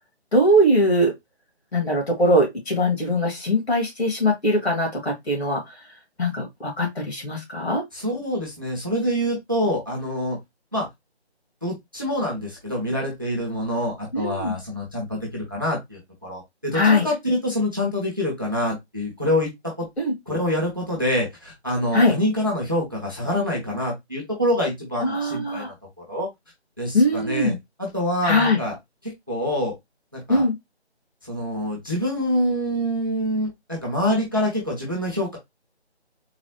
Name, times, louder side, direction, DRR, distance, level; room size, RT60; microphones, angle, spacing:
voice 1, 0.3-1.1 1.7-5.6 6.2-7.8 14.1-14.5 16.7-17.1 20.0-20.1 21.9-22.1 25.0-25.7 26.9-27.5 28.2-28.6 30.3-30.6, left 1 dB, 70° left, 2.0 m, -21 dB
voice 2, 7.9-10.4 10.7-10.9 11.6-19.5 19.8-19.9 20.3-26.3 26.8-27.5 27.8-28.8 29.0-29.7 30.1-30.5 31.2-35.4, left 1 dB, 20° right, 0.7 m, -26 dB
3.9 x 2.2 x 3.0 m
figure-of-eight pair, 170°, 33 cm